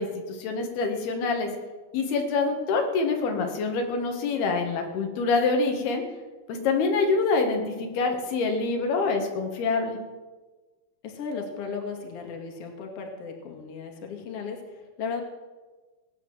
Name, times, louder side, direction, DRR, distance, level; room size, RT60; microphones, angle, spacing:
voice 1, 0.0-1.5 1.9-6.0 6.5-10.0, left 4 dB, 85° left, 3 dB, 3.8 m, -26 dB
voice 2, 11.0-15.2, left 5 dB, 45° left, 2 dB, 2.8 m, -36 dB
18.5 x 9.2 x 7.7 m, 1.3 s
omnidirectional pair, 4.3 m